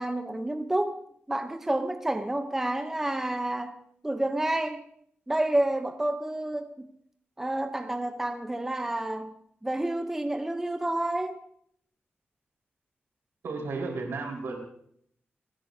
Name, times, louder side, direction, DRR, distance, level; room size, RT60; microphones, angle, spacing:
voice 1, 0.0-3.7 4.0-4.8 5.3-6.9 7.4-9.4 9.6-11.4, right 1 dB, 10° right, 0.7 m, -29 dB
voice 2, 13.4-14.6, right 3 dB, 80° right, 4.4 m, -33 dB
29.5 x 10.5 x 2.7 m
wide cardioid pair, 170°, 4 cm